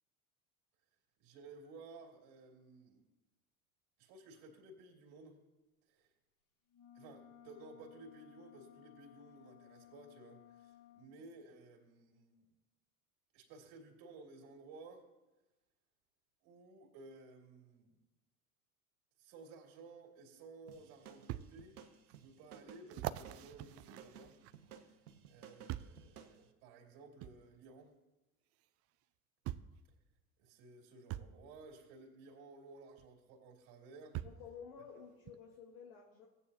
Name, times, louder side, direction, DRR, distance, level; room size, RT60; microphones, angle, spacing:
voice 1, 1.2-3.0 4.0-5.4 5.9-6.1 6.9-12.4 13.3-15.1 16.4-18.0 19.2-21.8 22.1-24.4 24.8-24.9 25.3-27.9 30.4-34.2, right 3 dB, 55° right, 0 dB, 2.7 m, -56 dB
sound 1, 6.7-11.2, left 12 dB, 45° left, 1.1 m, -60 dB
sound 2, 20.2-20.3 21.3-21.5 22.1-22.2 22.9-24.8 25.7-26.0 27.2-27.4 28.6-28.7 29.5-29.8 31.1-31.3 33.0-33.1 34.1-34.5 35.3-35.4, right 14 dB, 35° right, 0.4 m, -43 dB
sound 3, 20.7-26.4, right 7 dB, 85° right, 0.9 m, -57 dB
voice 2, 34.2-36.3, left 7 dB, 65° left, 1 dB, 1.5 m, -52 dB
16.5 x 8.9 x 2.8 m, 1.1 s
hypercardioid pair, 80°, 43 cm